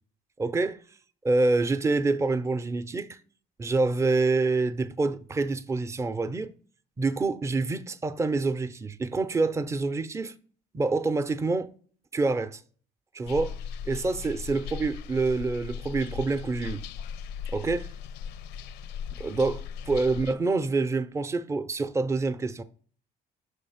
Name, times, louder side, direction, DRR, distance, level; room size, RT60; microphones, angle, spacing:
voice 1, 0.4-0.8 1.2-3.2 3.6-6.5 7.0-10.3 10.7-11.7 12.1-12.6 13.1-13.6 13.9-16.8 17.5-17.9 19.1-22.6, right 3 dB, 15° right, 0.5 m, -27 dB
sound 1, 13.2-20.3, left 7 dB, 85° left, 0.5 m, -38 dB
6.5 x 3.3 x 5.6 m
cardioid pair, 110°, 17 cm